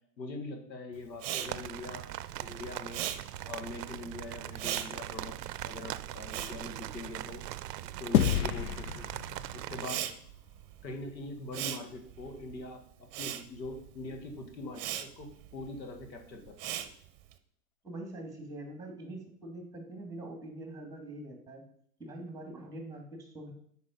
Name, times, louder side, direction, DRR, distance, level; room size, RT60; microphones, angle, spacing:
voice 1, 0.2-2.1 2.4-3.1 3.4-5.4 5.6-7.4 8.0-9.1 9.5-10.1 10.8-16.9, left 2 dB, 90° left, 4 dB, 1.6 m, -43 dB
Respiratory sounds, 1.1-7.6 7.9-17.3, right 12 dB, 40° right, 0.8 m, -40 dB
sound 1, 1.4-9.9, right 14 dB, 70° right, 0.6 m, -40 dB
sound 2, 8.1-10.8, left 11 dB, 60° left, 0.6 m, -31 dB
voice 2, 17.8-21.6 22.0-23.5, right 1 dB, 5° right, 3 dB, 2.4 m, -44 dB
8.4 x 5.2 x 5.3 m, 0.67 s
hypercardioid pair, 110°, 50 cm